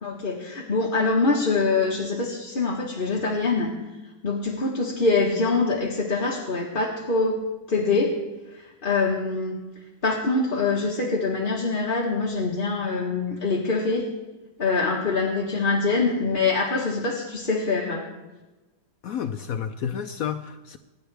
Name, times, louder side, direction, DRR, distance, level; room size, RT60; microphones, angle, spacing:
voice 1, 0.0-3.7 4.2-7.4 7.7-8.2 8.5-9.6 10.0-14.1 14.6-18.1, left 3 dB, 35° left, -2 dB, 1.4 m, -24 dB
voice 2, 19.0-20.8, left 8 dB, 70° left, 8 dB, 0.9 m, -30 dB
24.5 x 10.5 x 3.4 m, 1.1 s
omnidirectional pair, 1.8 m